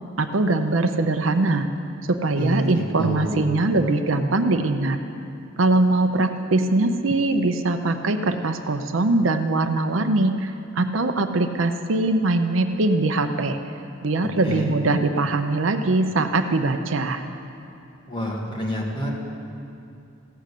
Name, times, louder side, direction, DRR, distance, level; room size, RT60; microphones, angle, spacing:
voice 1, 0.2-1.7 2.1-5.0 5.6-13.6 14.0-17.2, right 2 dB, 70° right, 7 dB, 0.7 m, -22 dB
voice 2, 2.4-3.5 14.4-14.7 18.1-19.1, equal, 20° left, -3 dB, 1.8 m, -27 dB
15.5 x 6.4 x 8.3 m, 2.6 s
head